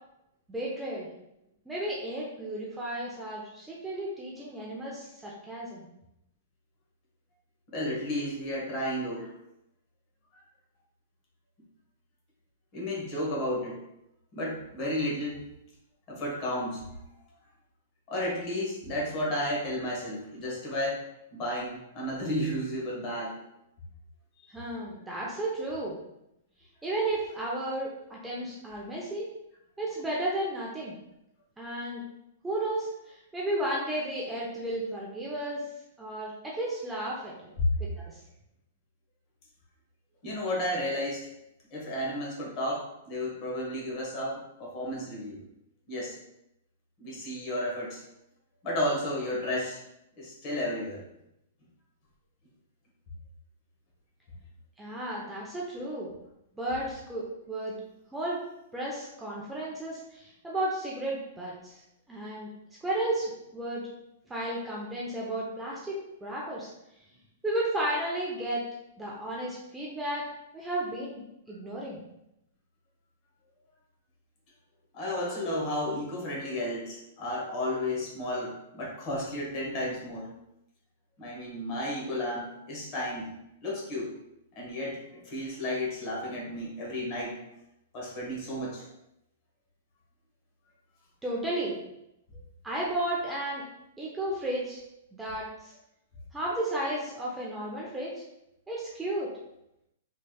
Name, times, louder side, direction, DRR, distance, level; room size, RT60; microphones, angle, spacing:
voice 1, 0.5-1.1 1.7-5.9 24.5-26.0 26.8-29.3 29.8-30.9 31.6-32.0 32.4-35.6 36.0-38.2 54.8-56.1 56.6-57.8 58.1-58.5 58.7-61.8 62.1-62.5 62.8-63.8 64.3-66.7 67.4-68.6 69.0-70.2 70.5-72.0 91.2-91.8 92.6-93.6 94.0-94.8 95.1-95.7 96.3-98.2 98.7-99.3, right 1 dB, 10° right, -5 dB, 0.5 m, -33 dB
voice 2, 7.7-9.3 10.3-10.4 12.7-13.8 14.3-15.5 16.1-16.8 18.1-21.0 21.3-23.4 24.4-24.6 37.6-37.7 40.2-41.3 41.7-45.4 45.9-46.1 47.0-48.0 48.6-49.8 50.2-51.0 74.9-80.3 81.2-83.3 83.6-84.1 84.5-87.4 87.9-88.8, left 1 dB, 35° left, -4 dB, 1.2 m, -32 dB
3.3 x 3.1 x 2.3 m, 0.83 s
hypercardioid pair, 150°, 0 cm